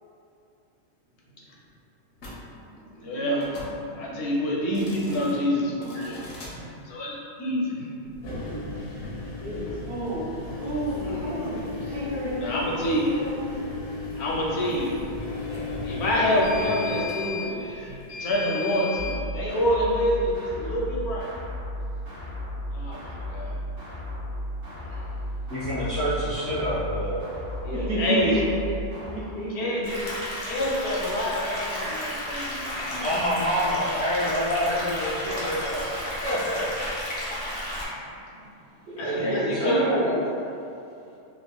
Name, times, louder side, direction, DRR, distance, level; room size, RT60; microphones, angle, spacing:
sound 1, 2.2-2.4 3.4-3.7 4.6-5.3 5.8-6.5 8.1-19.2, left 4 dB, 85° left, 1.1 m, -35 dB
voice 1, 3.0-3.5 3.8-6.3 6.9-7.1 7.4-8.7 11.1-11.5 12.4-13.2 14.2-15.0 15.9-17.9 18.2-21.3 22.7-23.0 23.3-23.5 27.6-28.4 29.5-29.8 30.4-33.0 39.0-39.8, equal, 65° left, -4 dB, 0.8 m, -27 dB
voice 2, 9.4-10.3 10.6-13.5 27.7-30.1 30.6-30.7 38.9-40.3, right 1 dB, 55° right, -6 dB, 0.7 m, -30 dB
sound 2, 19.0-29.2, equal, 75° right, 1.3 m, -34 dB
voice 3, 25.5-27.3 33.0-36.7 38.9-39.9, equal, 25° right, -14 dB, 0.4 m, -27 dB
sound 3, 29.8-37.9, left 1 dB, 35° left, 0.5 m, -32 dB
3.5 x 2.0 x 2.2 m, 2.7 s
omnidirectional pair, 1.3 m